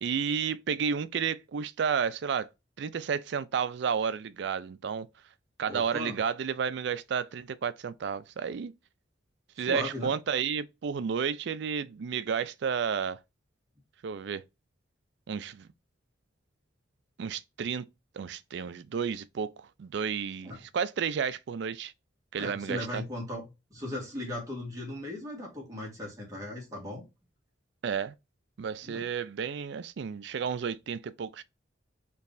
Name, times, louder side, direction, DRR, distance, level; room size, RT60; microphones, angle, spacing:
voice 1, 0.0-2.5 2.8-5.1 5.6-8.7 9.6-13.2 14.0-14.4 15.3-15.7 17.2-17.8 18.1-21.9 22.3-23.0 27.8-28.1 28.6-31.4, right 6 dB, 60° right, 0.4 m, -31 dB
voice 2, 5.7-6.2 9.6-10.1 20.4-20.6 22.4-27.0 28.8-29.1, left 1 dB, 15° right, 1.5 m, -37 dB
4.5 x 3.1 x 2.6 m
head